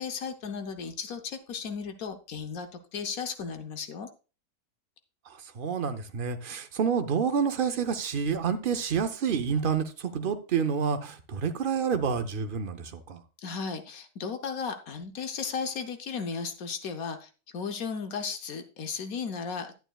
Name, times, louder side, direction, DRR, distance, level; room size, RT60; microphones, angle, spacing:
voice 1, 0.0-4.1 13.4-19.7, left 5 dB, 70° left, 7 dB, 1.3 m, -35 dB
voice 2, 5.3-13.2, right 6 dB, 50° right, 8 dB, 0.6 m, -28 dB
11.0 x 9.1 x 2.3 m, 0.33 s
omnidirectional pair, 1.6 m